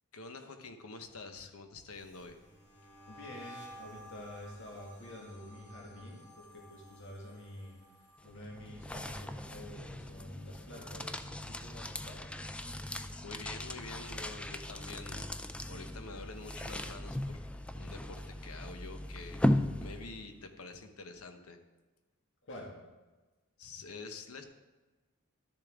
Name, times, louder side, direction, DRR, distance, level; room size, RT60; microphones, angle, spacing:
voice 1, 0.1-2.4 12.9-15.4 15.7-17.5 17.7-21.6 23.6-24.4, left 3 dB, 85° left, 7 dB, 1.0 m, -47 dB
sound 1, 1.9-11.1 11.4-11.8 12.1-13.7, equal, 35° left, 2.7 m, -55 dB
voice 2, 3.1-7.7 8.2-12.2 22.5-22.7, left 1 dB, 60° left, -2 dB, 1.9 m, -48 dB
sound 2, 8.2-20.4, left 1 dB, 5° left, 0.3 m, -37 dB
12.0 x 6.9 x 3.6 m, 1.2 s
head